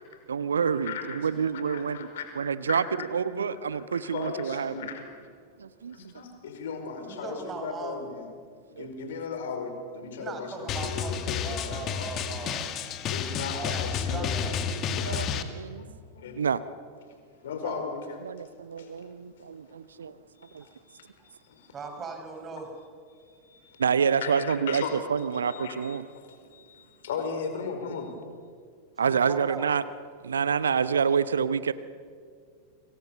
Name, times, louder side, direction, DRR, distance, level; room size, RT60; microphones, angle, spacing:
voice 1, 0.3-2.1 2.4-4.7 5.6-6.0 8.8-8.9 15.0-15.9 16.4-16.6 18.2-20.2 20.5-20.6 23.8-24.8 25.1-26.1 29.0-29.8 30.2-31.7, right 6 dB, 70° right, 15 dB, 0.8 m, -27 dB
voice 2, 0.8-2.3 2.7-2.8 3.5-5.3 5.9-8.2 8.7-12.4 13.0-15.4 15.8-16.4 17.3-18.0 18.8-18.9 20.4-21.1 21.4-21.7 23.2-23.8 24.2-24.9 25.4-28.1, left 5 dB, 60° left, 6 dB, 4.9 m, -37 dB
voice 3, 7.1-8.1 10.2-12.7 13.6-15.0 17.6-17.8 20.6-20.7 21.7-22.7 29.0-29.6, right 4 dB, 25° right, 4 dB, 5.9 m, -39 dB
Drum, 10.7-15.4, left 7 dB, 35° left, 2.1 m, -31 dB
30.0 x 26.0 x 7.1 m, 2.1 s
figure-of-eight pair, 90°, 0 cm